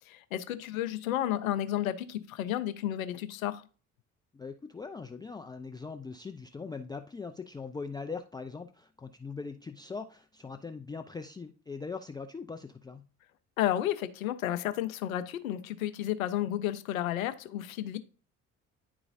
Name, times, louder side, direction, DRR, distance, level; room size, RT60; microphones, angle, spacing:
voice 1, 0.0-3.6 13.6-18.0, left 12 dB, 75° left, 0.6 m, -32 dB
voice 2, 4.3-13.1, left 4 dB, 10° left, 0.4 m, -41 dB
10.5 x 3.9 x 2.5 m
figure-of-eight pair, 50°, 41 cm